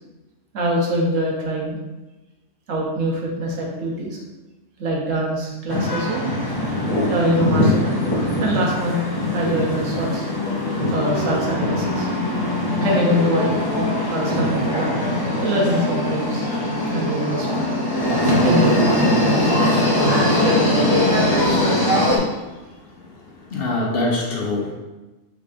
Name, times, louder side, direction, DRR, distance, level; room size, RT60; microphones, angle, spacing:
voice 1, 0.5-1.8 2.7-4.2 4.8-6.3 7.1-8.0 8.4-9.0 9.3-10.2 10.9-12.1 12.8-13.5 14.1-14.9 15.4-16.5 16.9-17.7 18.4-21.7, right 1 dB, 85° right, -2 dB, 1.3 m, -24 dB
sound 1, 5.7-22.2, left 1 dB, 20° left, 0.8 m, -21 dB
voice 2, 23.0-24.7, left 2 dB, 55° left, -1 dB, 0.8 m, -25 dB
4.8 x 3.3 x 2.5 m, 1.1 s
omnidirectional pair, 1.3 m